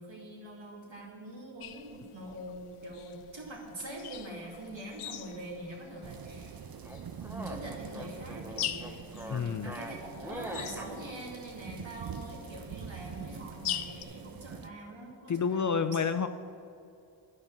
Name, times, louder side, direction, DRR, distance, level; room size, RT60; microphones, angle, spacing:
voice 1, 0.0-6.6 7.2-16.0, right 1 dB, 65° right, -2 dB, 2.5 m, -44 dB
sound 1, 1.6-14.0, left 10 dB, 90° left, 0.6 m, -44 dB
sound 2, 6.0-14.7, right 7 dB, 50° right, 0.5 m, -45 dB
sound 3, 6.8-10.9, equal, 5° right, 0.9 m, -43 dB
voice 2, 9.3-9.8 15.3-16.3, left 6 dB, 40° left, 10 dB, 0.4 m, -29 dB
10.5 x 5.3 x 7.1 m, 2.5 s
cardioid pair, 50°, 48 cm